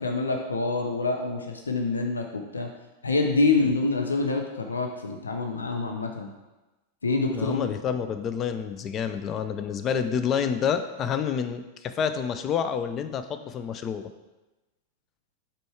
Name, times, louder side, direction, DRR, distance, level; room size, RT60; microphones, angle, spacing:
voice 1, 0.0-2.7 3.0-6.3 7.0-7.7, left 3 dB, 75° left, 3 dB, 0.6 m, -26 dB
voice 2, 7.3-14.1, left 7 dB, 30° left, 9 dB, 0.5 m, -28 dB
5.2 x 4.4 x 4.8 m, 1.1 s
figure-of-eight pair, 90°, 0 cm